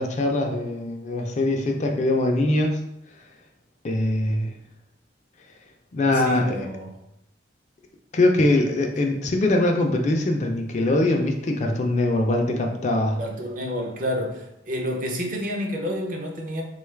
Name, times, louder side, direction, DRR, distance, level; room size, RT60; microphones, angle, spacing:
voice 1, 0.0-2.8 3.8-4.5 5.9-6.7 8.1-13.2, left 2 dB, 40° left, 2 dB, 0.4 m, -22 dB
voice 2, 6.0-6.9 13.2-16.6, equal, 45° right, 1 dB, 0.6 m, -29 dB
3.7 x 2.3 x 3.2 m, 0.82 s
head